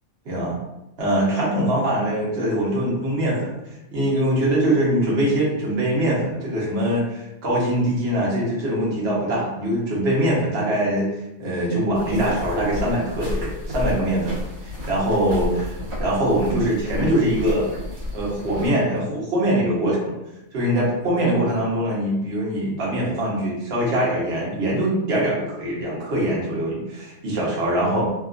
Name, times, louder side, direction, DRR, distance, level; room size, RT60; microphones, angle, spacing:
voice 1, 1.0-3.5 3.9-11.1 11.4-15.7 16.0-17.7 18.1-20.1 20.5-28.1, right 1 dB, 50° right, -5 dB, 1.1 m, -23 dB
sound 1, 11.9-18.7, left 1 dB, 80° right, 1.3 m, -31 dB
2.9 x 2.3 x 2.4 m, 0.89 s
omnidirectional pair, 1.5 m